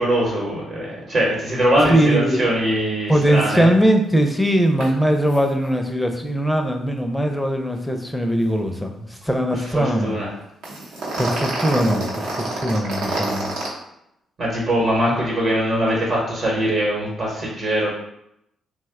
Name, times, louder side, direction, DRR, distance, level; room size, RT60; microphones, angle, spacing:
voice 1, 0.0-3.7 9.5-10.3 14.4-17.9, right 1 dB, 55° right, -4 dB, 0.9 m, -22 dB
voice 2, 1.9-2.4 3.1-10.2 11.2-13.5, right 1 dB, 5° left, 4 dB, 0.5 m, -20 dB
sound 1, 4.8-4.9 5.2-5.4 5.6-5.8 10.6-13.7, right 2 dB, 85° right, 0.8 m, -27 dB
2.7 x 2.1 x 3.5 m, 0.80 s
cardioid pair, 80°, 0 cm